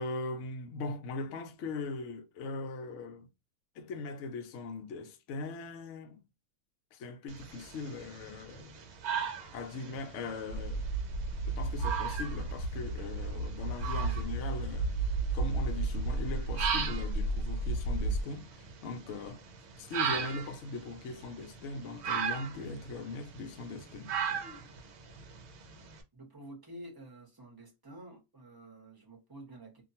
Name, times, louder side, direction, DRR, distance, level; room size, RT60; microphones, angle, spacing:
voice 1, 0.0-3.3 3.8-6.2 6.9-8.8 9.5-10.9 11.5-19.4 19.8-24.1, left 3 dB, 65° left, 0.8 m, -40 dB
sound 1, 7.3-26.0, right 7 dB, 60° right, 0.8 m, -39 dB
sound 2, 10.5-18.2, right 2 dB, 85° left, 1.1 m, -33 dB
voice 2, 26.1-29.8, right 1 dB, 20° right, 0.7 m, -49 dB
2.6 x 2.2 x 2.6 m
omnidirectional pair, 1.5 m